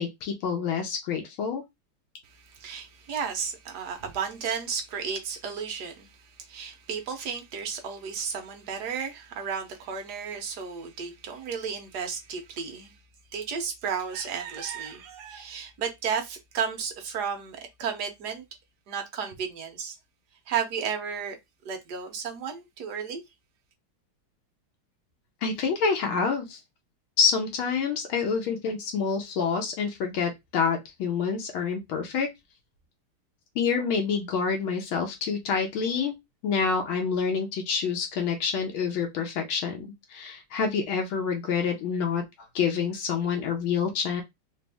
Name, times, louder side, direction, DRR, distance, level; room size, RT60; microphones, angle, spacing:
voice 1, 0.0-1.6 25.4-26.6 27.2-32.3 33.5-36.1 36.4-42.2 42.5-44.2, left 6 dB, 75° left, 1.6 m, -27 dB
voice 2, 2.3-13.0 13.3-18.4 18.9-20.0 20.5-21.4 21.6-23.2, right 6 dB, 60° right, 1.2 m, -33 dB
4.0 x 2.6 x 3.4 m
omnidirectional pair, 2.3 m